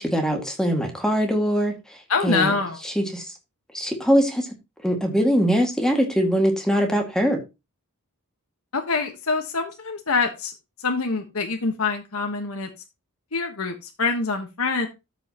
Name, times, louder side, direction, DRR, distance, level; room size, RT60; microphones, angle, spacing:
voice 1, 0.0-1.8 2.2-2.5 3.0-3.2 3.7-4.5 4.8-7.4, equal, 5° left, 2.0 m, -22 dB
voice 2, 2.1-2.8 8.7-10.5 10.8-12.7 13.3-14.9, left 4 dB, 70° left, 1.3 m, -25 dB
13.5 x 5.3 x 2.9 m
head